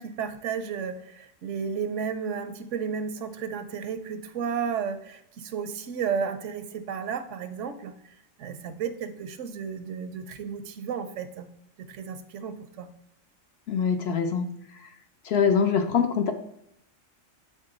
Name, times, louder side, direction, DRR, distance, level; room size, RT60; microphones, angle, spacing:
voice 1, 0.0-7.9 8.4-11.5 11.9-12.9, right 6 dB, 75° right, 9 dB, 0.9 m, -33 dB
voice 2, 13.7-14.5 15.2-16.3, left 6 dB, 65° left, 7 dB, 0.7 m, -23 dB
7.5 x 3.7 x 3.8 m, 0.78 s
omnidirectional pair, 1.3 m